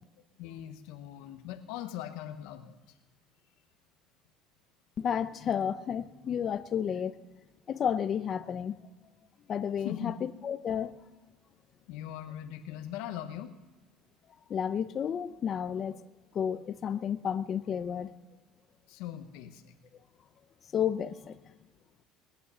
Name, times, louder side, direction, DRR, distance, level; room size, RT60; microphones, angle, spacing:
voice 1, 0.4-3.0 9.8-10.2 11.9-13.5 18.9-19.8, left 11 dB, 75° left, 7 dB, 0.9 m, -40 dB
voice 2, 5.0-7.1 7.7-8.7 9.5-10.9 14.5-16.0 16.3-18.1 20.7-21.4, left 8 dB, 30° left, 11 dB, 0.6 m, -31 dB
19.5 x 9.3 x 6.9 m, 1.2 s
cardioid pair, 155°, 0 cm